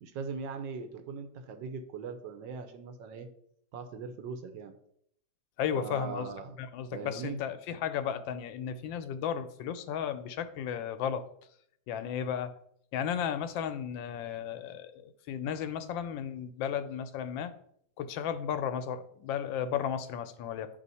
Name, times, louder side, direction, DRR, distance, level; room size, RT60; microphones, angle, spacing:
voice 1, 0.0-3.3 3.7-4.8 5.7-6.5 6.9-7.4, right 5 dB, 80° right, 6 dB, 1.4 m, -40 dB
voice 2, 5.6-6.3 6.6-11.2 11.9-12.5 12.9-17.5 18.0-20.7, left 8 dB, 85° left, 10 dB, 1.3 m, -34 dB
9.0 x 3.3 x 4.1 m, 0.70 s
omnidirectional pair, 2.0 m